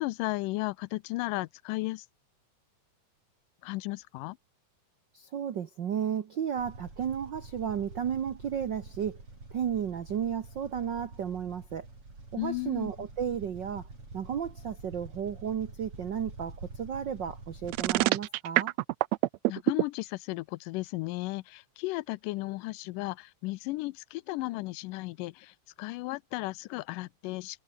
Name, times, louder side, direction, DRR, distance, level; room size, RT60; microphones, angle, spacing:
voice 1, 0.0-2.1 3.6-4.4 12.4-13.1 19.5-27.6, left 20 dB, 85° left, 2.2 m, -35 dB
voice 2, 5.1-9.2 9.5-11.9 12.3-13.8 14.1-18.7, right 8 dB, 70° right, 1.0 m, -33 dB
sound 1, 6.6-18.1, right 3 dB, 40° right, 8.3 m, -47 dB
sound 2, 17.7-19.8, right 19 dB, 90° right, 1.5 m, -25 dB
omnidirectional pair, 3.7 m